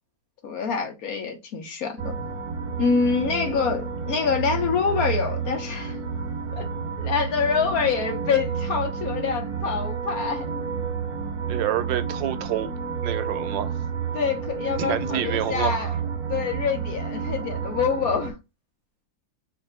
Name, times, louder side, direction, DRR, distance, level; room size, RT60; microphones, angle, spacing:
voice 1, 0.4-2.1 2.8-6.0 6.5-6.7 7.0-10.6 14.1-15.9 16.3-18.4, left 6 dB, 60° left, 1.1 m, -26 dB
sound 1, 2.0-18.3, right 6 dB, 65° right, 1.1 m, -30 dB
voice 2, 11.5-12.7 13.0-13.7 14.8-15.9, right 11 dB, 85° right, 1.4 m, -28 dB
4.0 x 2.6 x 3.2 m
omnidirectional pair, 2.0 m